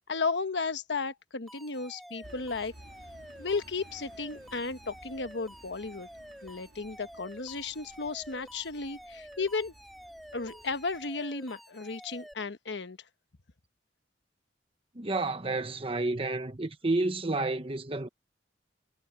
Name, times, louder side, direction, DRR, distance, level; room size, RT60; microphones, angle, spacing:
voice 1, 0.1-2.7 3.4-6.1 6.4-9.7 10.3-13.0, left 4 dB, 80° left, 1.1 m, -34 dB
Alarm, 1.5-12.3, equal, ahead, 5.0 m, -50 dB
sound 1, 2.2-11.1, right 1 dB, 70° right, 2.8 m, -56 dB
voice 2, 14.9-18.1, right 2 dB, 30° right, 1.2 m, -30 dB
head